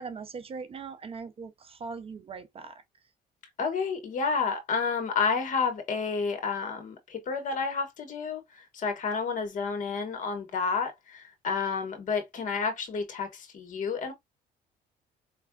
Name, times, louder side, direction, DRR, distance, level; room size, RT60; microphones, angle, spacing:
voice 1, 0.0-2.8, right 5 dB, 35° right, 0.5 m, -40 dB
voice 2, 3.6-8.4 8.7-10.9 11.4-13.3 13.5-14.1, left 5 dB, 50° left, 1.4 m, -30 dB
4.6 x 3.2 x 2.3 m
cardioid pair, 110°, 17 cm